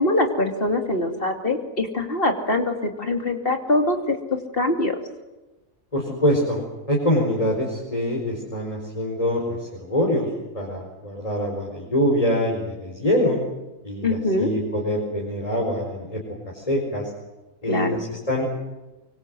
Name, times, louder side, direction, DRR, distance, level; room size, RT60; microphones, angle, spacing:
voice 1, 0.0-4.2 4.5-5.0 14.0-14.5 17.7-18.0, left 2 dB, 45° left, 5 dB, 2.9 m, -23 dB
voice 2, 5.9-6.6 6.9-10.3 10.5-13.4 13.8-16.2 16.5-17.1 17.6-18.4, left 1 dB, 25° left, -2 dB, 4.8 m, -24 dB
25.0 x 23.5 x 7.9 m, 1.1 s
omnidirectional pair, 1.4 m